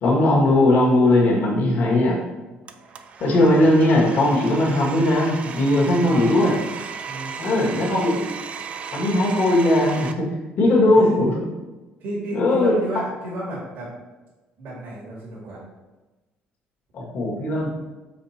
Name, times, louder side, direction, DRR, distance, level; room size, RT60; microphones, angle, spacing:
voice 1, 0.0-2.2 3.2-6.6 7.4-8.2 8.9-10.3 10.6-11.3 12.3-12.7 16.9-17.7, left 1 dB, 50° left, -4 dB, 1.9 m, -18 dB
Domestic sounds home sounds, 2.7-10.1, right 6 dB, 35° right, 0.4 m, -36 dB
voice 2, 5.9-6.3 7.1-7.9 10.7-11.1 12.0-13.9 14.6-15.6, right 1 dB, 65° right, -5 dB, 2.2 m, -33 dB
5.2 x 3.8 x 5.8 m, 1.1 s
cardioid pair, 145°, 4 cm